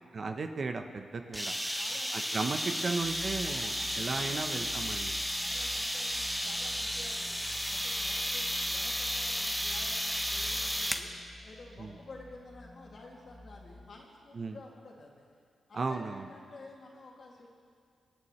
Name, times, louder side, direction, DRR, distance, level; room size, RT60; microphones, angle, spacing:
voice 1, 0.1-1.5 2.1-5.2 11.8-11.9 14.3-14.6 15.7-16.3, right 4 dB, 55° right, 6 dB, 0.8 m, -35 dB
sound 1, 1.3-11.1, equal, ahead, 0.9 m, -33 dB
voice 2, 1.7-2.9 3.4-4.6 5.4-7.3 7.7-11.1 11.4-15.3 15.7-17.5, left 2 dB, 60° left, -2 dB, 2.2 m, -52 dB
sound 2, 3.0-13.8, left 1 dB, 40° left, 2.0 m, -49 dB
25.5 x 8.7 x 3.2 m, 2.2 s
cardioid pair, 55°, 0 cm